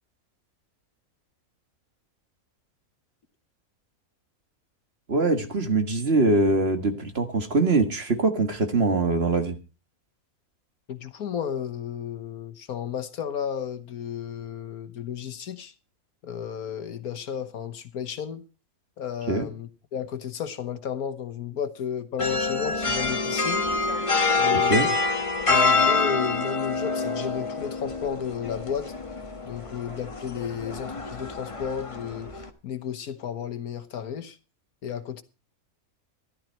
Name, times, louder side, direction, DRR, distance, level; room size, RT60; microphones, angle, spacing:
voice 1, 5.1-9.6 19.3-19.5 24.6-24.9, right 3 dB, 45° right, 1.8 m, -23 dB
voice 2, 10.9-15.7 16.2-18.4 19.0-23.7 24.3-24.9 25.5-28.9 29.4-32.3 32.6-34.4 34.8-35.2, left 8 dB, 75° left, 1.6 m, -33 dB
sound 1, 22.2-32.5, left 3 dB, 25° left, 1.3 m, -26 dB
14.5 x 12.0 x 4.4 m
omnidirectional pair, 1.6 m